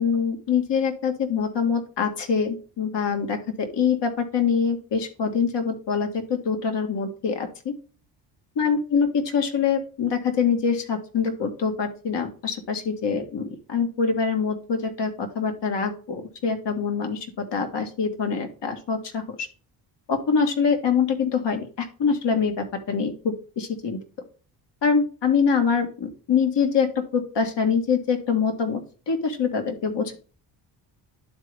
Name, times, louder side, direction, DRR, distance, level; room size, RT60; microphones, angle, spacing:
voice 1, 0.0-7.7 8.6-9.1 9.3-19.5 20.1-24.0 24.8-26.9 27.1-28.8 29.1-30.2, left 6 dB, 55° left, 6 dB, 1.9 m, -24 dB
11.5 x 3.9 x 3.4 m, 0.37 s
supercardioid pair, 60°, 50 cm